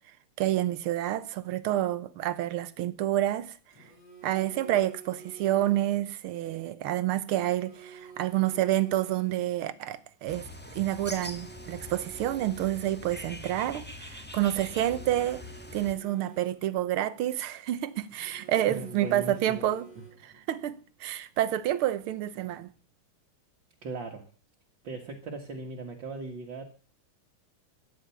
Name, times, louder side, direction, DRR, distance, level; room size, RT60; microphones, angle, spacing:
voice 1, 0.4-3.6 4.2-10.5 10.7-15.4 15.7-19.9 20.2-22.7, right 13 dB, 75° right, 1.8 m, -29 dB
Telephone, 3.7-6.0 7.3-9.7 10.9-13.3 14.5-16.9 18.1-20.5, right 6 dB, 50° left, 7.6 m, -51 dB
Bird, 10.3-15.9, left 2 dB, 5° left, 1.2 m, -43 dB
voice 2, 18.7-19.7 20.0-20.1 23.8-24.3 24.8-26.7, right 3 dB, 60° right, 2.3 m, -38 dB
13.5 x 10.0 x 6.9 m
omnidirectional pair, 2.4 m